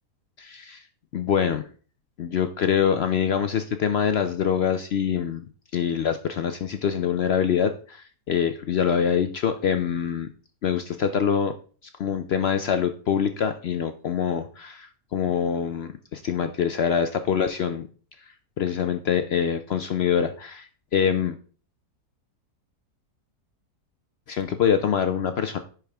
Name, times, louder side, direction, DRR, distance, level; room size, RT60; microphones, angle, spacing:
voice 1, 0.4-0.8 1.1-1.6 2.2-5.4 5.7-10.3 10.6-11.5 12.0-17.9 18.6-21.4 24.3-25.6, left 8 dB, 75° left, 8 dB, 0.5 m, -25 dB
10.5 x 4.7 x 3.4 m, 0.41 s
omnidirectional pair, 1.7 m